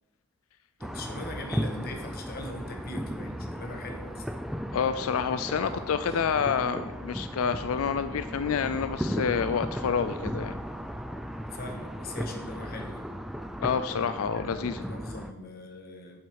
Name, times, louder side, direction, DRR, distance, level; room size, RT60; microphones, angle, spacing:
voice 1, 0.8-4.2 5.5-6.4 11.5-13.1 14.0-16.2, left 2 dB, 45° left, 3 dB, 1.3 m, -41 dB
sound 1, 0.8-15.3, equal, ahead, 0.3 m, -36 dB
voice 2, 4.7-10.6 13.6-14.8, left 6 dB, 90° left, 12 dB, 0.4 m, -28 dB
8.1 x 7.9 x 4.7 m, 1.1 s
head